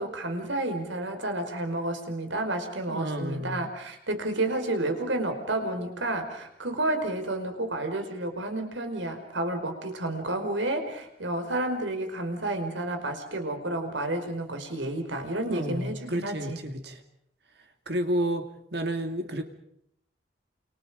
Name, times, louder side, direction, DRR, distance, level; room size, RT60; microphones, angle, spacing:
voice 1, 0.0-16.6, right 1 dB, 80° right, 6 dB, 5.2 m, -31 dB
voice 2, 2.9-3.6 15.5-17.0 17.9-19.4, equal, 60° right, 7 dB, 2.4 m, -31 dB
29.5 x 28.5 x 5.2 m, 0.71 s
head